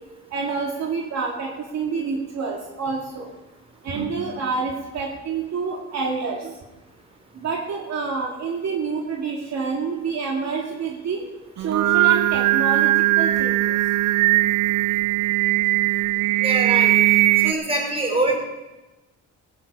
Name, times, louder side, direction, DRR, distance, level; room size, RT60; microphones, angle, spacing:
voice 1, 0.3-3.3 3.8-6.5 7.4-11.3 11.6-13.8, right 5 dB, 60° right, -1 dB, 2.5 m, -28 dB
Singing, 11.6-17.5, right 16 dB, 90° right, 0.6 m, -19 dB
voice 2, 16.4-16.9 17.4-18.4, right 2 dB, 20° right, 1 dB, 4.5 m, -23 dB
15.5 x 10.0 x 5.4 m, 1.1 s
cardioid pair, 90°, 30 cm